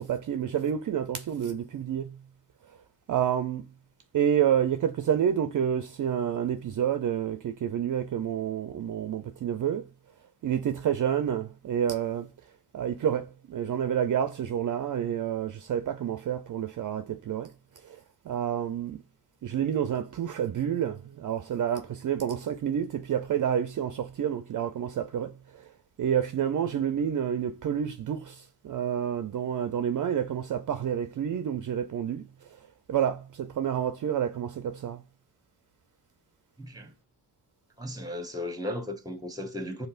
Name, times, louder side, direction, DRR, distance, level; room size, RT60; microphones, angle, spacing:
voice 1, 0.0-2.2 3.1-3.7 4.1-9.8 10.4-12.3 12.7-17.5 18.3-19.0 19.4-25.3 26.0-32.2 32.9-35.0, right 9 dB, 45° right, 0.5 m, -29 dB
voice 2, 36.6-36.9 37.8-39.9, left 1 dB, 10° right, 0.9 m, -35 dB
5.3 x 2.1 x 2.4 m
cardioid pair, 60°, 42 cm